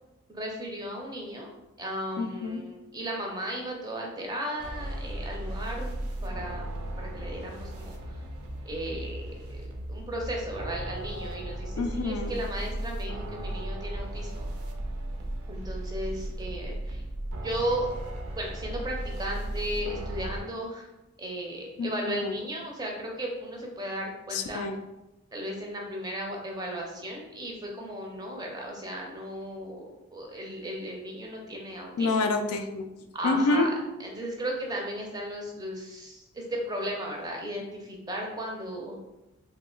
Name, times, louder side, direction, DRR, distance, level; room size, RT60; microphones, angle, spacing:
voice 1, 0.3-1.5 1.8-5.9 6.2-6.7 7.0-8.2 8.7-9.6 9.9-14.5 15.5-17.0 17.4-17.9 18.4-20.9 21.2-24.6 25.3-29.8 30.1-32.2 33.1-33.7 34.0-39.0, right 1 dB, 15° right, 0 dB, 0.4 m, -35 dB
voice 2, 2.2-2.6 11.8-12.4 21.8-22.3 24.3-24.8 32.0-32.9 33.2-33.7, left 3 dB, 75° left, 6 dB, 0.3 m, -27 dB
sound 1, 4.6-20.4, right 1 dB, 80° right, 0.5 m, -36 dB
2.8 x 2.1 x 3.7 m, 1.0 s
head